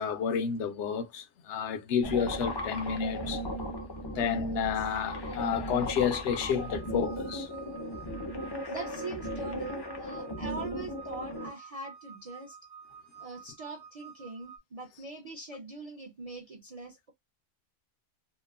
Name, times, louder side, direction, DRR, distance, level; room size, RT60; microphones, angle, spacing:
voice 1, 0.0-3.4 4.0-7.5, left 7 dB, 70° left, 0.9 m, -30 dB
sound 1, 2.0-11.5, equal, 35° left, 0.4 m, -37 dB
sound 2, 6.3-14.6, right 7 dB, 70° right, 1.0 m, -51 dB
voice 2, 8.7-12.6 13.2-17.1, right 3 dB, 40° right, 0.5 m, -42 dB
2.9 x 2.0 x 2.3 m
omnidirectional pair, 1.3 m